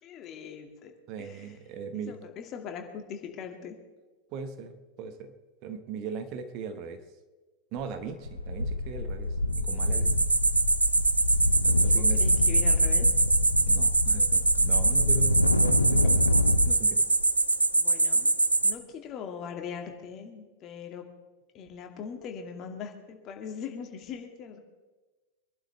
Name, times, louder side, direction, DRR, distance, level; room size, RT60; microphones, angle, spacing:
voice 1, 0.0-0.9 1.2-1.6 1.9-3.8 11.8-13.1 17.7-18.3 18.6-21.1 21.5-24.6, left 7 dB, 35° left, 4 dB, 2.2 m, -41 dB
voice 2, 1.1-2.1 4.3-5.3 5.6-7.0 7.7-9.3 9.6-10.2 11.6-12.2 13.7-16.3 16.6-17.1, right 6 dB, 40° right, 8 dB, 1.4 m, -39 dB
sound 1, 7.8-8.0 8.3-16.7, left 2 dB, 85° left, 0.7 m, -27 dB
sound 2, 9.5-18.7, right 3 dB, 80° right, 0.6 m, -24 dB
24.5 x 11.5 x 3.4 m, 1.2 s
figure-of-eight pair, 90°, 0 cm